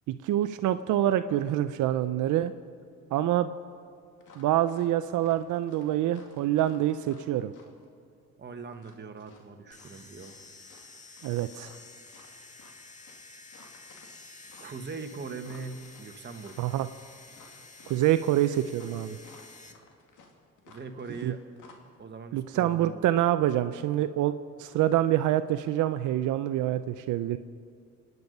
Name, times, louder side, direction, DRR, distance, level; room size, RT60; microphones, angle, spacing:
voice 1, 0.1-2.5 3.1-3.5 4.4-7.5 11.2-11.7 16.6-16.9 17.9-19.2 21.2-21.3 22.3-27.4, right 12 dB, 85° right, 11 dB, 0.6 m, -26 dB
sound 1, 4.2-4.9 5.2-7.8 8.7-10.9 11.1-21.3 21.6-21.7, left 4 dB, 80° left, 2.4 m, -56 dB
voice 2, 8.4-10.3 14.6-16.7 20.7-21.4 22.0-23.0, right 4 dB, 35° right, 5 dB, 1.5 m, -41 dB
sound 2, 9.7-19.7, left 3 dB, 25° left, 1.7 m, -51 dB
27.0 x 9.6 x 5.4 m, 2.3 s
cardioid pair, 90°, 30 cm